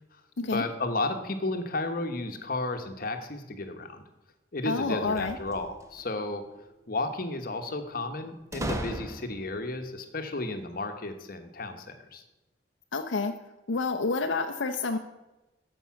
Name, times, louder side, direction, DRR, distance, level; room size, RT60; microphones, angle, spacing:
voice 1, 0.5-4.0 4.5-6.4 6.9-12.2, left 2 dB, 50° left, 6 dB, 1.0 m, -33 dB
voice 2, 4.6-5.4 12.9-13.3 13.7-15.0, left 3 dB, 75° left, 5 dB, 0.6 m, -28 dB
sound 1, 5.0-6.1 8.5-9.6, right 1 dB, 15° right, 0.8 m, -36 dB
13.0 x 5.4 x 5.8 m, 1.0 s
head